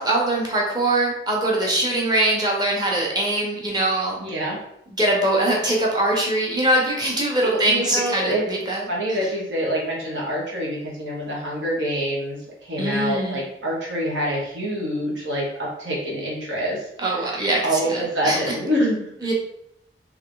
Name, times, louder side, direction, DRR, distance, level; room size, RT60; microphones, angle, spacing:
voice 1, 0.0-4.2 5.0-9.2 12.8-13.4 17.0-18.4 19.2-19.3, right 1 dB, 25° right, -2 dB, 1.0 m, -22 dB
voice 2, 4.2-4.6 7.4-8.4 8.9-15.4 15.8-16.8 17.1-17.4 17.6-19.3, equal, 85° right, -4 dB, 1.5 m, -26 dB
3.6 x 3.3 x 3.8 m, 0.78 s
head